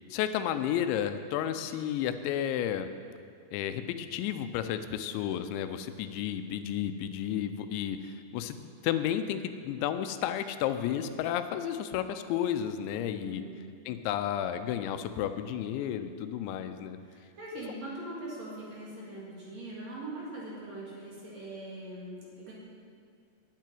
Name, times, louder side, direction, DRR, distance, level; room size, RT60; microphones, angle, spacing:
voice 1, 0.1-2.9 3.5-8.6 8.8-13.4 13.9-17.0 17.5-17.6, left 10 dB, 85° left, 10 dB, 3.0 m, -32 dB
voice 2, 13.2-13.7 17.0-22.5, right 1 dB, 50° right, -5 dB, 2.7 m, -42 dB
10.0 x 7.5 x 9.3 m, 2.4 s
omnidirectional pair, 5.1 m